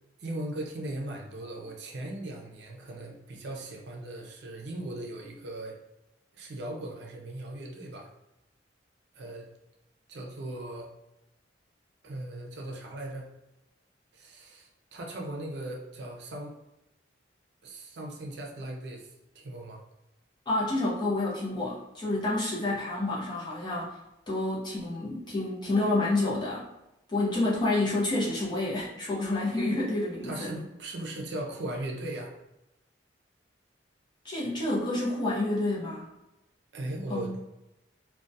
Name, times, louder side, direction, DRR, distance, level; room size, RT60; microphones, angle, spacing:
voice 1, 0.2-5.8 6.3-8.1 9.1-9.5 10.1-10.9 12.0-13.3 14.1-16.6 17.6-19.1 19.3-19.8 30.2-32.3 36.7-37.4, right 1 dB, 60° right, 0 dB, 0.5 m, -38 dB
voice 2, 20.5-24.0 24.3-26.7 27.1-30.5 34.2-36.0 37.1-37.3, left 2 dB, 25° left, -7 dB, 0.6 m, -29 dB
2.3 x 2.1 x 2.6 m, 0.93 s
head